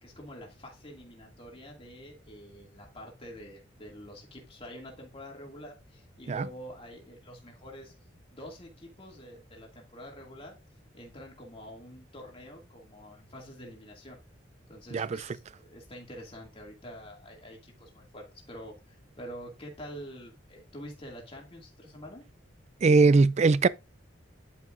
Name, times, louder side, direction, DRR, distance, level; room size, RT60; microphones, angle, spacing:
voice 1, 0.0-7.9 8.3-10.6 10.9-14.2 14.7-22.2, equal, 30° left, 2.4 m, -46 dB
voice 2, 22.8-23.7, right 3 dB, 35° right, 0.3 m, -20 dB
10.5 x 6.0 x 2.6 m
head